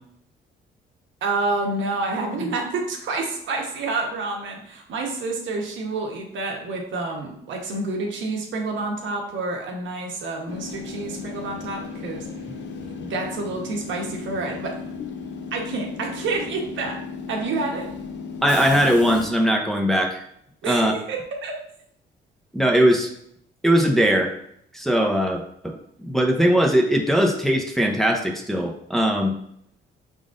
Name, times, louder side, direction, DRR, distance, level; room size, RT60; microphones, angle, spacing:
voice 1, 1.2-12.3 13.0-14.7 15.5-17.0 17.3-17.9 20.6-21.5, right 3 dB, 75° right, 1 dB, 1.1 m, -28 dB
Train / Subway metro underground, 10.5-19.3, left 5 dB, 65° left, 0.6 m, -35 dB
voice 2, 18.4-20.2 20.6-20.9 22.5-23.1 23.6-24.4 24.7-29.3, equal, ahead, 0 dB, 0.7 m, -20 dB
4.9 x 3.8 x 2.5 m, 0.69 s
cardioid pair, 90°, 20 cm